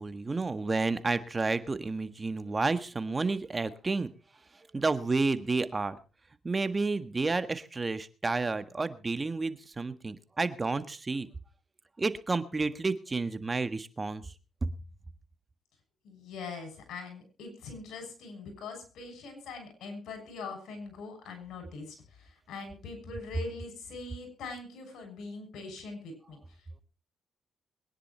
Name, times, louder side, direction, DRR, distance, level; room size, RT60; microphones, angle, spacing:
voice 1, 0.0-4.1 4.7-6.0 6.4-11.3 12.0-14.2, right 3 dB, 30° right, 11 dB, 1.6 m, -30 dB
voice 2, 16.0-26.4, left 4 dB, 85° left, 6 dB, 6.9 m, -42 dB
22.5 x 10.0 x 4.4 m, 0.35 s
cardioid pair, 75°, 0 cm